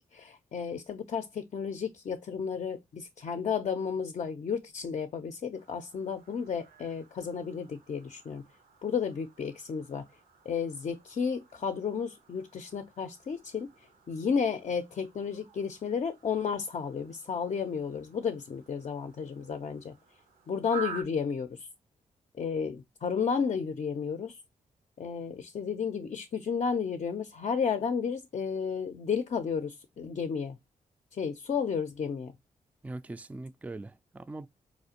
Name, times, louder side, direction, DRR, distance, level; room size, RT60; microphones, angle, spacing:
voice 1, 0.0-8.4 8.8-10.1 10.4-20.0 20.5-21.7 22.4-24.4 25.0-30.6 31.1-32.4, left 6 dB, 50° left, 0.5 m, -32 dB
sound 1, 5.5-21.0, right 4 dB, 85° right, 0.7 m, -49 dB
voice 2, 32.8-34.5, right 2 dB, 10° right, 0.3 m, -41 dB
4.2 x 2.4 x 2.8 m
supercardioid pair, 50°, 14 cm